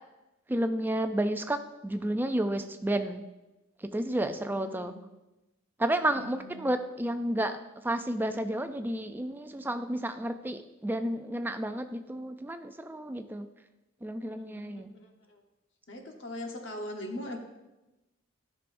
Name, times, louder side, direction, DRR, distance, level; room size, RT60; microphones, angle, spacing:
voice 1, 0.5-3.2 3.8-4.9 5.8-13.5 14.0-14.9, right 1 dB, 10° right, 8 dB, 0.3 m, -31 dB
voice 2, 4.3-5.0 5.9-6.8 14.2-15.4 15.9-17.4, left 1 dB, 60° left, 2 dB, 1.1 m, -42 dB
11.5 x 6.1 x 2.6 m, 1.0 s
head